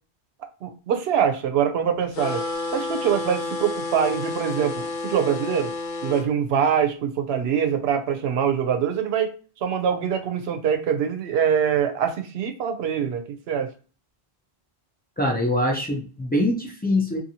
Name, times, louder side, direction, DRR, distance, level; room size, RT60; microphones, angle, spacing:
voice 1, 0.6-2.5 2.7-5.7 6.0-9.3 9.6-13.7, right 8 dB, 75° right, 7 dB, 0.8 m, -24 dB
sound 1, 2.1-6.3, left 2 dB, 60° left, 0.6 m, -30 dB
voice 2, 15.2-17.2, left 1 dB, 15° left, -1 dB, 0.4 m, -23 dB
2.6 x 2.6 x 2.8 m, 0.37 s
omnidirectional pair, 1.1 m